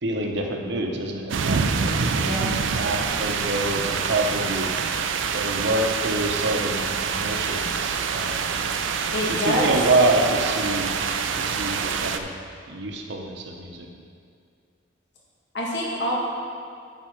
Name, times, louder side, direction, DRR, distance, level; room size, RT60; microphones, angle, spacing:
voice 1, 0.0-2.2 2.6-4.7 5.3-8.5 9.3-11.0 11.4-12.3 12.7-13.9, right 2 dB, 65° right, 2 dB, 0.9 m, -26 dB
sound 1, 1.3-12.2, right 5 dB, 80° right, 0.5 m, -26 dB
voice 2, 9.1-9.7 15.5-16.1, equal, 65° left, -3 dB, 1.7 m, -25 dB
9.5 x 5.9 x 4.5 m, 2.3 s
head